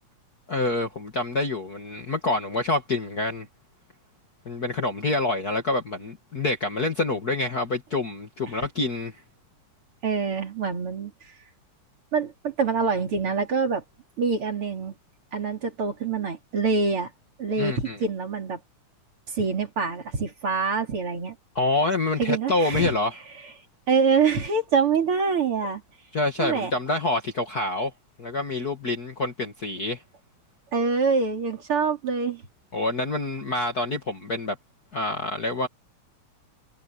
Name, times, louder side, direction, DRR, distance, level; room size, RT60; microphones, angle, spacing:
voice 1, 0.5-3.5 4.5-9.1 17.6-18.0 21.6-23.2 26.1-27.9 28.2-30.0 32.7-34.6 34.9-35.7, left 2 dB, 35° left, 1.9 m, -27 dB
voice 2, 10.0-11.1 12.1-13.8 14.2-14.9 15.3-17.1 17.4-18.6 19.3-21.4 22.2-22.9 23.9-25.8 26.4-26.7 30.7-32.4, right 5 dB, 45° right, 3.6 m, -25 dB
omnidirectional pair, 3.4 m